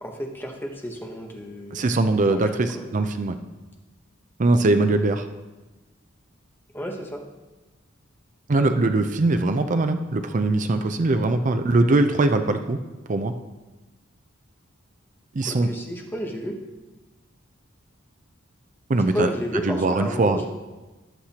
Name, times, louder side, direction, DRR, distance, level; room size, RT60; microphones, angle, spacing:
voice 1, 0.0-1.8 2.3-2.8 6.7-7.2 15.5-16.6 19.1-20.5, equal, 10° left, 1 dB, 1.0 m, -31 dB
voice 2, 1.7-3.4 4.4-5.3 8.5-12.8 13.1-13.3 15.3-15.7 18.9-19.3 19.6-20.4, right 2 dB, 40° right, 8 dB, 0.5 m, -21 dB
17.5 x 6.5 x 2.9 m, 1.1 s
head